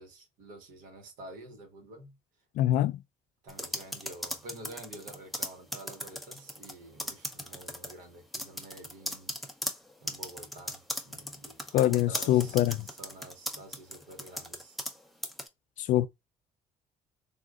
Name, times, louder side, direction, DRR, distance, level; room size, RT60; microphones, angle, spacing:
voice 1, 0.0-2.1 3.4-9.3 10.0-14.8, right 1 dB, 85° right, 1.2 m, -49 dB
voice 2, 2.6-3.0 11.7-12.9 15.8-16.1, left 13 dB, 70° left, 0.4 m, -24 dB
sound 1, 3.5-6.7 7.0-7.9 8.3-15.0 15.2-15.5, left 1 dB, ahead, 0.5 m, -37 dB
3.6 x 2.4 x 2.3 m
cardioid pair, 140°, 13 cm